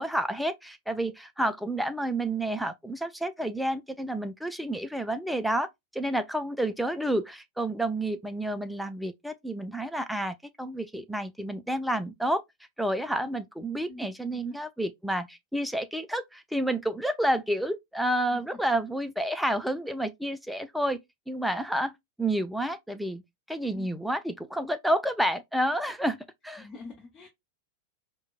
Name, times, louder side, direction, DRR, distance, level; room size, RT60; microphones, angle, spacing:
voice 1, 0.0-5.7 5.9-12.4 12.8-21.0 21.3-21.9 22.2-23.2 23.5-26.2 26.4-26.6, right 1 dB, ahead, 0.4 m, -30 dB
voice 2, 13.9-14.6 18.3-18.6 23.7-23.9 26.6-27.3, left 3 dB, 25° left, 0.8 m, -45 dB
4.4 x 2.2 x 2.2 m
figure-of-eight pair, 90°, 0 cm